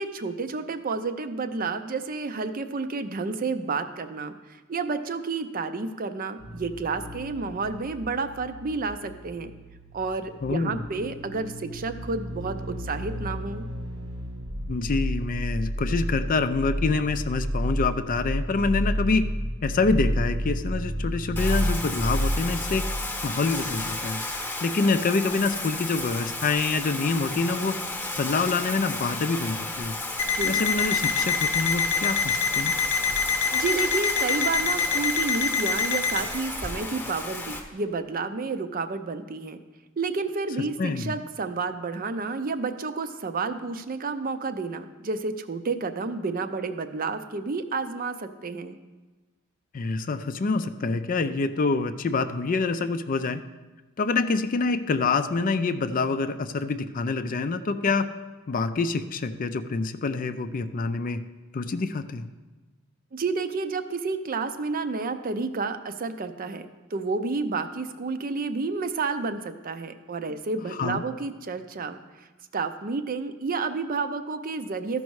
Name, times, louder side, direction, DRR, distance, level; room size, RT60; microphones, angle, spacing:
voice 1, 0.0-9.5 9.9-13.6 30.2-30.6 33.5-39.6 40.0-48.8 63.1-72.0 72.5-75.0, right 4 dB, 40° right, 9 dB, 0.5 m, -30 dB
sound 1, 6.4-23.9 24.2-24.3, equal, 90° right, 1.3 m, -31 dB
voice 2, 10.4-10.8 14.7-19.2 19.6-22.8 23.2-24.2 24.6-27.8 28.2-29.9 30.4-32.7 40.8-41.1 49.7-53.4 54.0-58.1 58.5-61.2 61.5-62.3 70.7-71.0, left 4 dB, 40° left, 10 dB, 0.4 m, -26 dB
Bathtub (filling or washing), 21.4-37.6, left 2 dB, 10° left, 0.9 m, -33 dB
Alarm, 30.2-36.3, left 6 dB, 80° left, 0.7 m, -25 dB
13.5 x 5.3 x 4.7 m, 1.2 s
head